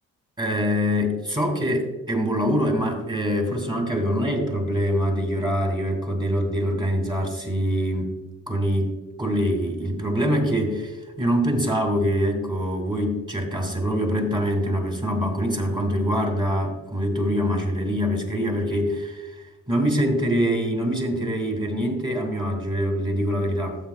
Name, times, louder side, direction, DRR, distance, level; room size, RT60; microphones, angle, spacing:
voice 1, 0.4-8.1 8.5-19.3 19.7-23.8, equal, 15° right, 2 dB, 2.7 m, -24 dB
15.0 x 7.8 x 2.4 m, 1.1 s
cardioid pair, 90°, 30 cm